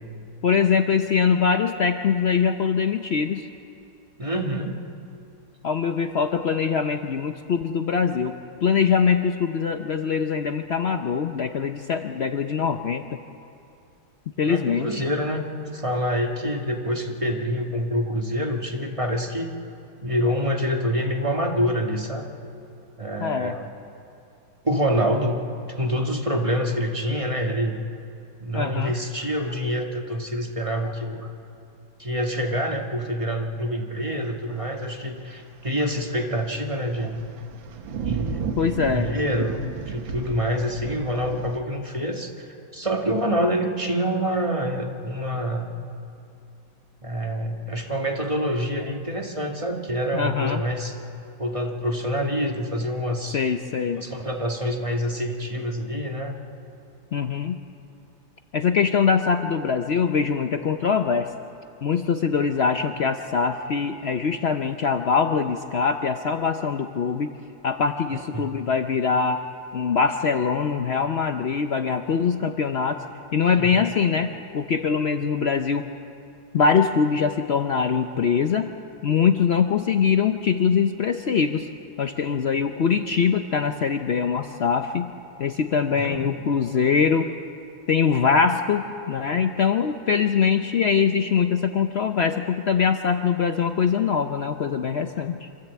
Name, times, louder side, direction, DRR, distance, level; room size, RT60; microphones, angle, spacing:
voice 1, 0.4-3.5 5.6-8.3 8.6-13.2 14.4-15.0 23.2-23.5 28.5-28.9 38.6-39.1 50.1-50.6 53.3-54.0 57.1-57.6 58.5-61.3 61.8-67.3 67.6-69.4 69.7-73.0 73.3-75.9 76.5-78.7 79.0-81.7 82.0-85.1 85.4-87.3 87.9-95.5, left 6 dB, 85° left, 7 dB, 0.5 m, -23 dB
voice 2, 4.2-4.8 14.5-15.4 15.7-19.5 20.0-22.3 23.0-23.7 24.6-27.8 28.4-31.3 32.0-37.2 38.0-38.6 38.9-45.7 47.0-50.9 51.4-53.4 53.9-56.3 68.1-68.5 73.6-73.8 85.9-86.5, equal, 20° right, 2 dB, 1.4 m, -26 dB
sound 1, 36.4-36.5 36.8-41.6, right 6 dB, 85° right, 1.8 m, -33 dB
26.0 x 14.0 x 8.2 m, 2.6 s
omnidirectional pair, 2.0 m